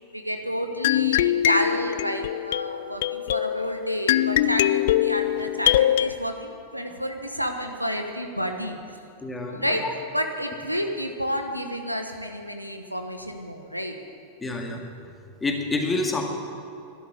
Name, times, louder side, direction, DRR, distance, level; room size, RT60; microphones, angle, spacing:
voice 1, 0.1-8.8 9.5-9.8 10.1-14.0, equal, 90° left, 5 dB, 1.1 m, -30 dB
sound 1, 0.8-6.1, left 13 dB, 55° left, 0.3 m, -23 dB
voice 2, 9.2-9.9 14.4-14.8 15.4-16.2, left 3 dB, 15° left, 2 dB, 2.2 m, -28 dB
12.5 x 11.5 x 9.7 m, 2.6 s
figure-of-eight pair, 90°, 0 cm